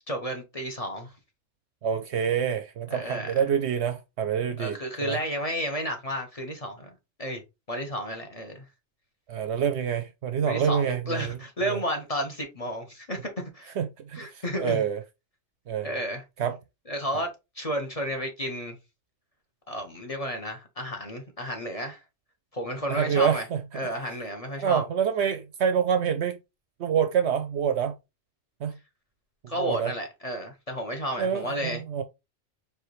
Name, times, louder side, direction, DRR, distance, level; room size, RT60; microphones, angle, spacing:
voice 1, 0.1-1.1 2.9-3.3 4.6-6.9 7.2-7.4 7.7-8.6 10.4-13.7 14.1-14.8 15.8-16.2 16.9-17.3 17.6-18.8 19.7-22.0 22.5-23.5 23.7-24.8 29.5-31.8, equal, 30° left, 0.9 m, -32 dB
voice 2, 1.8-5.2 9.3-11.4 11.7-11.8 13.8-14.3 14.6-15.0 15.7-15.9 16.4-16.6 22.9-23.6 24.6-26.4 26.8-27.9 28.6-28.8 29.6-29.9 31.2-32.0, right 8 dB, 65° right, 0.8 m, -26 dB
4.7 x 3.2 x 3.1 m
omnidirectional pair, 1.4 m